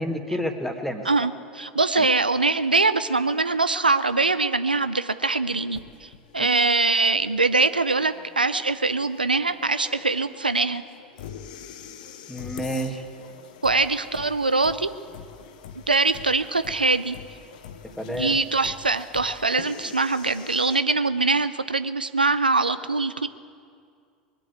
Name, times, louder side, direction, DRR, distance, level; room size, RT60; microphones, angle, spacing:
voice 1, 0.0-1.1 2.0-2.1 6.4-6.5 12.3-13.0 18.0-18.4, equal, 5° left, 5 dB, 1.6 m, -29 dB
voice 2, 1.1-10.8 13.6-14.9 15.9-17.2 18.1-23.3, right 3 dB, 90° right, 12 dB, 0.4 m, -23 dB
sound 1, 5.7-20.8, left 8 dB, 60° left, 0.9 m, -44 dB
20.5 x 7.8 x 9.0 m, 2.2 s
figure-of-eight pair, 80°, 5 cm